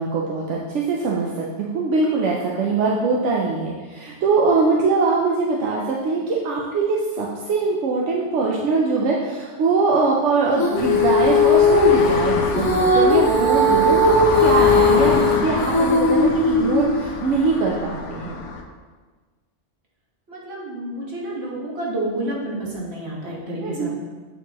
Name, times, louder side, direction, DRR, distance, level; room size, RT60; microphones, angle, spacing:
voice 1, 0.0-18.3 23.6-23.9, right 4 dB, 85° right, -3 dB, 1.0 m, -22 dB
Female singing, 10.5-17.1, left 3 dB, 25° left, 0.6 m, -18 dB
sound 1, 10.8-18.6, left 4 dB, 85° left, 1.0 m, -27 dB
voice 2, 20.3-23.9, right 1 dB, 65° right, -4 dB, 1.6 m, -29 dB
8.1 x 4.6 x 2.9 m, 1.4 s
omnidirectional pair, 1.2 m